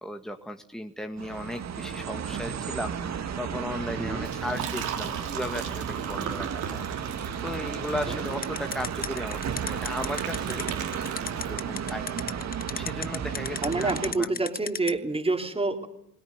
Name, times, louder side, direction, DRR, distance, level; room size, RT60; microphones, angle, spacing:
voice 1, 0.0-6.8 7.4-10.7 11.5-14.3, left 1 dB, ahead, 5 dB, 1.8 m, -36 dB
sound 1, 1.2-14.1, right 7 dB, 60° right, 2.1 m, -34 dB
voice 2, 4.0-4.3 8.1-8.2 13.6-15.9, right 3 dB, 20° right, 4 dB, 3.3 m, -28 dB
Liquid, 4.2-11.9, right 8 dB, 80° right, 3.7 m, -37 dB
sound 2, 8.4-14.9, left 6 dB, 30° left, 0.9 m, -32 dB
21.0 x 18.0 x 9.6 m, 0.76 s
cardioid pair, 90°, 30 cm